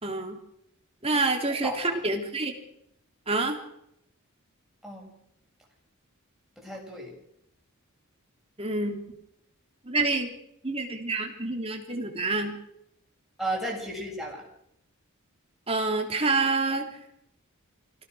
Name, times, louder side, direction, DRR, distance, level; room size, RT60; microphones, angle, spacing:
voice 1, 0.0-0.4 1.0-2.5 3.3-3.6 8.6-9.0 9.8-10.3 10.6-12.6 15.7-16.9, right 3 dB, 30° right, 2 dB, 3.5 m, -27 dB
voice 2, 1.1-2.0 4.8-5.2 6.6-7.2 13.4-14.4, right 1 dB, ahead, -2 dB, 7.2 m, -35 dB
25.5 x 17.5 x 6.4 m, 0.77 s
head